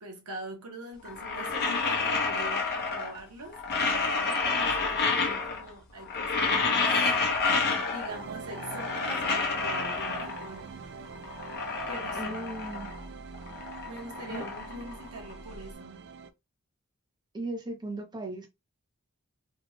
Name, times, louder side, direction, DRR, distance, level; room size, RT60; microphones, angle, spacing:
voice 1, 0.0-3.9 4.2-7.2 7.9-10.7 11.9-12.4 13.9-16.1, right 1 dB, 85° right, 1.1 m, -43 dB
sound 1, 1.1-3.2 3.5-5.7 6.0-8.2 8.5-10.6 11.1-13.1 13.3-15.5, left 4 dB, 50° left, 0.9 m, -29 dB
sound 2, 8.1-16.3, right 5 dB, 55° right, 0.4 m, -44 dB
voice 2, 12.1-12.9 14.3-14.7 17.3-18.5, right 2 dB, 20° right, 0.8 m, -37 dB
3.4 x 2.3 x 3.2 m
head